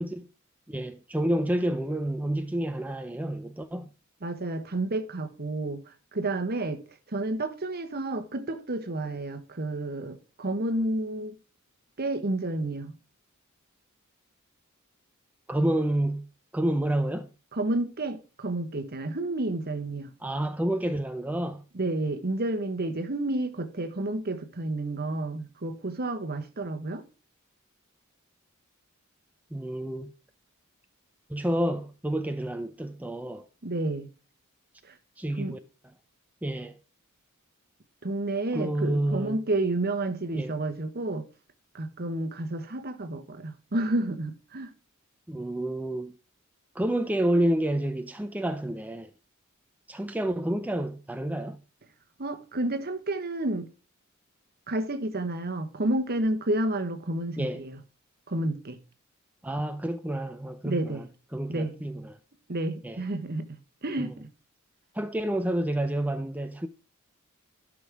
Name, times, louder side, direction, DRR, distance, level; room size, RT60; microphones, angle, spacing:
voice 1, 0.7-3.9 15.5-16.3 16.5-17.3 20.2-21.6 29.5-30.1 31.3-33.5 35.2-35.6 36.4-36.8 38.5-39.4 40.3-40.6 45.3-46.1 46.7-49.1 49.9-51.6 57.4-57.7 59.4-61.1 61.3-62.2 62.8-63.0 64.0-64.1 64.9-66.7, right 1 dB, 5° right, 0.5 m, -29 dB
voice 2, 4.2-5.8 6.1-6.8 7.1-11.3 12.0-12.9 17.5-20.1 21.7-27.0 33.6-34.1 35.4-35.6 38.0-41.3 41.7-44.7 52.2-53.7 54.7-57.8 58.3-58.8 60.6-61.1 61.5-61.8 62.5-64.3, right 2 dB, 50° right, 1.2 m, -30 dB
12.0 x 6.2 x 3.5 m
head